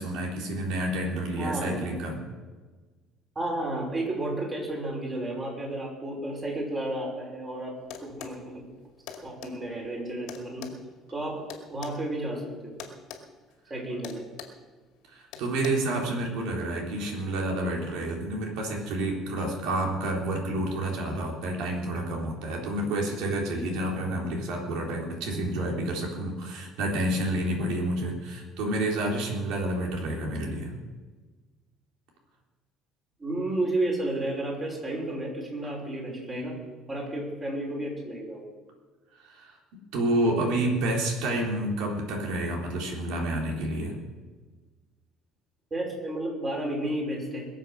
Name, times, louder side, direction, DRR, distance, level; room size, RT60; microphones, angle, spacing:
voice 1, 0.0-2.2 15.1-30.7 39.2-39.6 39.9-44.0, right 1 dB, 80° right, 0 dB, 3.8 m, -29 dB
voice 2, 1.4-1.9 3.4-7.7 8.0-8.6 9.2-10.7 11.1-11.4 11.7-12.7 13.7-14.2 33.2-36.6 36.9-38.5 45.7-47.5, right 1 dB, 25° right, -2 dB, 5.4 m, -32 dB
sound 1, 7.9-8.4 9.1-9.5 10.3-12.0 12.8-13.2 13.5-13.7 14.0-14.6 15.3-15.7, left 9 dB, 90° left, 2.1 m, -42 dB
21.5 x 7.6 x 6.4 m, 1.3 s
cardioid pair, 135°, 0 cm